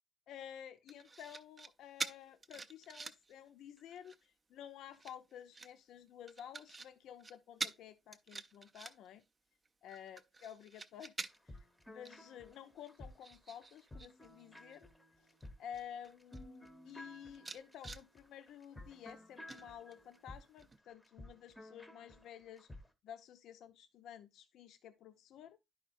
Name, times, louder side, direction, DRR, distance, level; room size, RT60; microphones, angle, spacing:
voice 1, 0.3-9.2 9.8-11.1 11.5-11.6 11.9-14.9 15.6-22.7 23.0-25.6, left 9 dB, 85° left, 0.6 m, -52 dB
sound 1, 0.9-1.7 2.0-3.3 3.8-4.2 4.9-5.7 6.3-6.9 7.2-7.3 7.6-7.8 8.1-9.2 9.6-11.6 12.0-12.2 12.5-14.1 14.4-14.8 15.4-15.5 15.7-16.4 16.9-17.0 17.3-18.0 19.5-20.2 20.6-20.8, right 3 dB, 20° right, 0.4 m, -46 dB
sound 2, 11.2-22.9, left 1 dB, 5° left, 0.7 m, -55 dB
10.5 x 5.0 x 2.5 m
cardioid pair, 170°, 0 cm